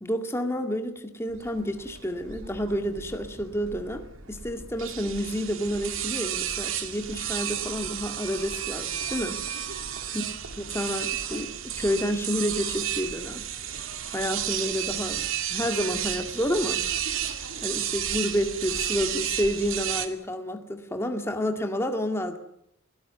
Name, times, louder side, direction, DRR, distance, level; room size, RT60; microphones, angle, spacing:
voice 1, 0.0-9.4 10.1-10.3 10.6-13.4 14.1-15.2 15.5-16.8 17.6-22.4, equal, 10° left, 5 dB, 2.0 m, -29 dB
sound 1, 1.3-20.1, right 9 dB, 70° right, 2.1 m, -32 dB
23.5 x 17.0 x 9.3 m, 0.77 s
head